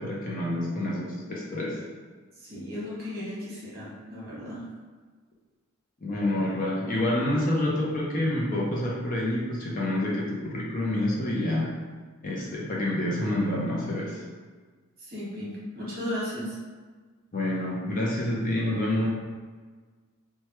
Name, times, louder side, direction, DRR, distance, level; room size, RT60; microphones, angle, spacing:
voice 1, 0.0-1.8 6.0-11.7 12.2-14.2 17.3-19.1, left 1 dB, 40° left, -4 dB, 0.5 m, -28 dB
voice 2, 2.4-4.6 15.0-16.6, left 1 dB, 45° right, -7 dB, 1.2 m, -35 dB
3.2 x 2.2 x 2.9 m, 1.4 s
head